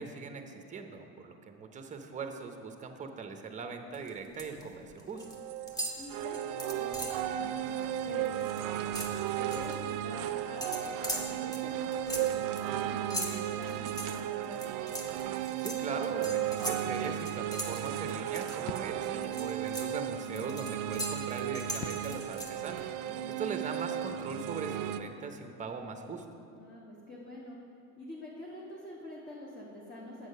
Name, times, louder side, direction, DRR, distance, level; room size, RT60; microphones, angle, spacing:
voice 1, 0.0-5.2 15.6-26.2, right 5 dB, 15° right, 6 dB, 0.8 m, -40 dB
sound 1, 3.9-4.6 4.9-5.4 5.7-7.3 7.7-7.8 8.1-9.8 10.6-18.8 19.2-22.8, equal, 10° left, 1.1 m, -40 dB
sound 2, 5.2-25.0, right 11 dB, 50° right, 0.5 m, -35 dB
voice 2, 6.0-9.0 9.4-14.8 19.2-19.6 23.0-23.3 26.5-27.6 28.0-30.3, left 1 dB, 25° left, -4 dB, 1.3 m, -47 dB
sound 3, 18.6-25.0, left 7 dB, 60° left, 0.6 m, -51 dB
8.2 x 6.3 x 5.4 m, 2.6 s
hypercardioid pair, 100°, 42 cm